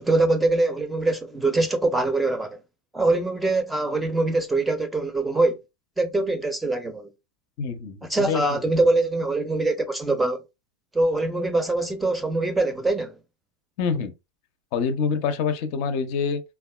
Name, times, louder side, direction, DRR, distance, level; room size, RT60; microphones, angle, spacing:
voice 1, 0.0-2.6 2.9-5.6 6.0-7.1 8.1-10.4 10.9-13.2, right 2 dB, 10° right, 0.6 m, -23 dB
voice 2, 7.6-8.6 13.8-14.1 14.7-16.4, left 5 dB, 55° left, 0.5 m, -26 dB
3.5 x 2.3 x 2.2 m
figure-of-eight pair, 85°, 0 cm